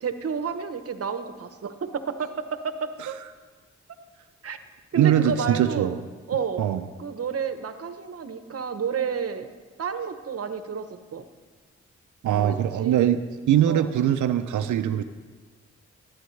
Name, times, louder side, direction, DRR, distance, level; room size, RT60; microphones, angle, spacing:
voice 1, 0.0-3.2 4.4-4.6 4.9-5.9 6.3-6.6 7.0-9.5 9.8-10.9 11.1-11.2 12.3-13.0 13.6-13.9, right 6 dB, 55° right, 10 dB, 0.8 m, -31 dB
voice 2, 5.0-6.0 6.6-6.8 12.2-13.2 13.5-15.0, right 10 dB, 85° right, 9 dB, 0.5 m, -22 dB
16.5 x 9.4 x 3.2 m, 1.4 s
cardioid pair, 60°, 29 cm